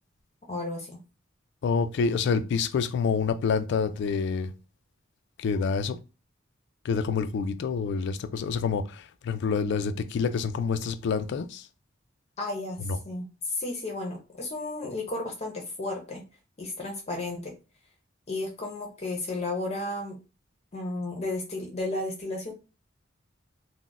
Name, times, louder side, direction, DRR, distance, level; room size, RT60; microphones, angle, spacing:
voice 1, 0.5-1.0 12.4-16.2 16.6-17.5 18.3-20.2 20.7-22.5, left 2 dB, 35° left, 0.6 m, -33 dB
voice 2, 1.6-4.5 5.4-6.0 6.8-11.7 12.8-13.0, left 5 dB, 60° left, 0.3 m, -27 dB
2.4 x 2.1 x 3.8 m
head